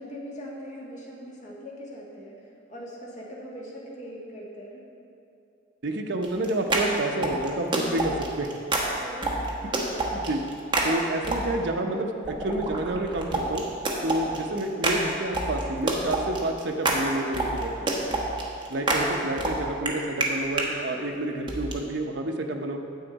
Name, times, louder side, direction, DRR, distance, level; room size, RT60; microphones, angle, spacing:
voice 1, 0.0-4.8 9.0-9.4 19.0-19.1, equal, 40° left, -5 dB, 1.7 m, -41 dB
voice 2, 5.8-8.5 10.1-10.4 10.8-13.7 14.0-18.0 18.7-22.8, right 1 dB, 60° right, 3 dB, 0.7 m, -29 dB
sound 1, 6.2-11.7 12.2-20.7 21.5-21.7, right 2 dB, 25° right, 0.9 m, -28 dB
9.5 x 7.8 x 4.1 m, 2.8 s
head